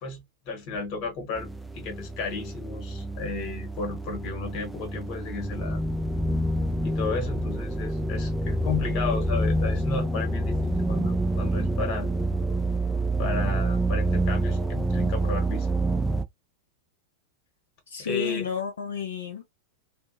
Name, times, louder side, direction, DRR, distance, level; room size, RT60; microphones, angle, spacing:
voice 1, 0.0-5.8 6.8-12.1 13.2-15.7 18.0-18.5, left 4 dB, 40° left, 1.1 m, -33 dB
sound 1, 1.4-16.2, right 1 dB, 5° right, 0.3 m, -27 dB
voice 2, 17.9-19.5, left 6 dB, 70° left, 0.4 m, -31 dB
2.6 x 2.0 x 2.5 m
figure-of-eight pair, 90°, 0 cm